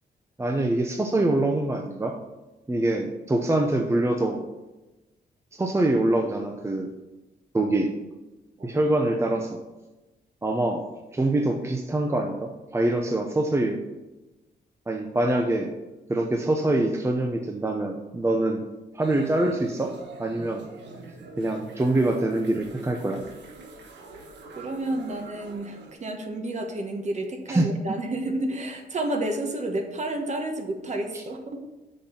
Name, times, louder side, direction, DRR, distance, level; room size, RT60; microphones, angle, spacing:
voice 1, 0.4-2.1 2.7-4.4 5.5-6.9 7.5-7.9 8.6-9.6 10.4-10.8 11.1-13.8 14.9-15.7 16.1-18.6 18.9-19.9 20.2-20.7 21.4-23.2 27.5-27.7, right 2 dB, 15° right, 3 dB, 0.7 m, -24 dB
sound 1, 19.0-25.9, right 3 dB, 80° right, 1.4 m, -45 dB
voice 2, 24.6-31.6, right 1 dB, 40° right, 4 dB, 1.3 m, -30 dB
6.5 x 5.8 x 6.8 m, 1.1 s
cardioid pair, 125°, 18 cm